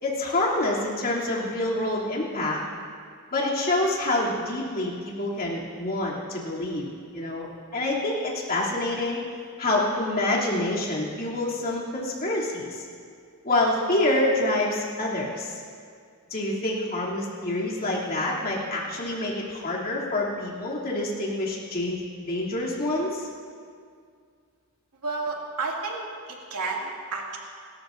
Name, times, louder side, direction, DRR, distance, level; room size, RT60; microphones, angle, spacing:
voice 1, 0.0-2.6 3.3-6.9 7.1-9.2 9.6-12.9 13.4-15.6 16.3-22.0 22.3-23.3, left 2 dB, 40° left, -5 dB, 2.8 m, -27 dB
voice 2, 25.0-26.0 26.5-27.4, right 3 dB, 90° right, -2 dB, 2.3 m, -30 dB
28.5 x 14.0 x 2.6 m, 2.2 s
head